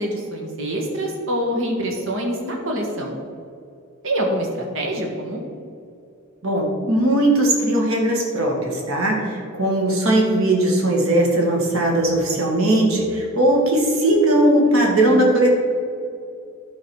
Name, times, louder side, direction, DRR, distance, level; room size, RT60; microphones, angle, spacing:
voice 1, 0.0-3.2 4.0-5.4, equal, 70° right, 0 dB, 1.5 m, -25 dB
voice 2, 6.4-15.5, right 1 dB, 85° right, -1 dB, 1.9 m, -18 dB
11.5 x 4.0 x 6.1 m, 2.5 s
head